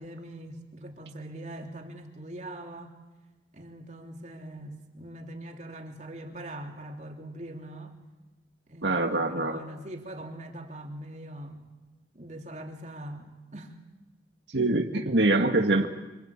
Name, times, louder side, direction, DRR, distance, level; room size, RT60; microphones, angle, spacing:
voice 1, 0.0-2.9 3.5-8.0 8.7-11.7 12.1-13.8, right 1 dB, 40° right, 2 dB, 3.4 m, -42 dB
voice 2, 8.8-9.6 14.5-15.9, right 2 dB, 80° right, 4 dB, 1.7 m, -24 dB
26.0 x 26.0 x 8.8 m, 1.1 s
head